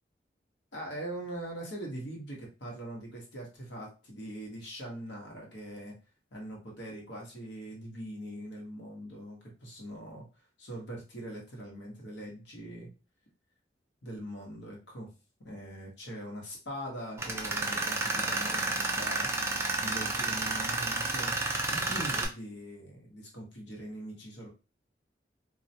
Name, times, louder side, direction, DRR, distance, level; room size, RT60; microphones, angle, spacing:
voice 1, 0.7-6.0 6.3-10.3 10.6-12.9 14.0-15.1 15.4-19.5 19.8-21.3 21.7-24.5, right 1 dB, 75° left, -1 dB, 1.0 m, -42 dB
Tools, 17.2-22.3, right 3 dB, 15° right, 0.3 m, -31 dB
2.3 x 2.1 x 2.7 m, 0.32 s
head